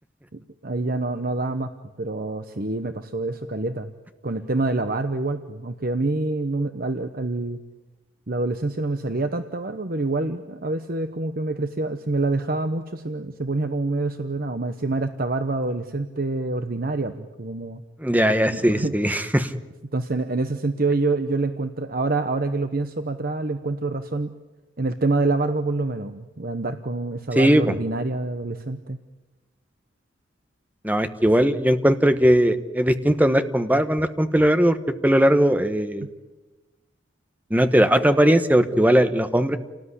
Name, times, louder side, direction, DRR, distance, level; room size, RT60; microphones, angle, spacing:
voice 1, 0.3-1.7 2.0-3.9 4.2-7.6 8.3-17.8 18.4-18.9 19.9-24.3 24.8-29.0, right 2 dB, 50° right, 8 dB, 1.0 m, -26 dB
voice 2, 18.0-19.5 27.4-27.7 30.8-34.8 35.0-36.1 37.5-39.6, equal, 10° right, 9 dB, 1.2 m, -19 dB
28.5 x 19.0 x 9.8 m, 1.1 s
head